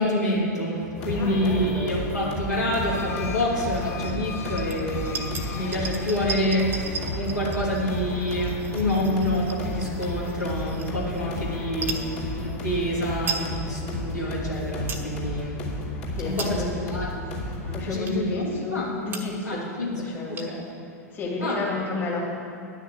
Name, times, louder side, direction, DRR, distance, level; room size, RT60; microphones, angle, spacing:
voice 1, 0.0-15.7 16.2-17.1 17.9-18.9 19.4-20.0 20.3-20.7 21.4-21.6, left 1 dB, 80° left, -6 dB, 2.9 m, -27 dB
sound 1, 0.9-17.8, left 2 dB, 40° left, 2.9 m, -33 dB
voice 2, 1.1-2.0 16.1-16.8 17.7-19.7 20.0-20.6 21.1-22.3, left 3 dB, 20° left, -4 dB, 2.2 m, -31 dB
sound 2, 2.5-6.6, left 6 dB, 60° left, 0.9 m, -41 dB
sound 3, 3.7-4.2 4.5-11.2 11.7-12.1 12.7-12.8 13.0-13.5 13.9-14.0 14.5-15.1 15.6-15.7 16.2-16.8 17.4-17.5 18.0-18.4 18.8-18.9 19.1-19.5 19.8-19.9 20.1-20.7, right 5 dB, 20° right, 1.1 m, -36 dB
9.8 x 6.4 x 8.3 m, 2.6 s
figure-of-eight pair, 95°, 9 cm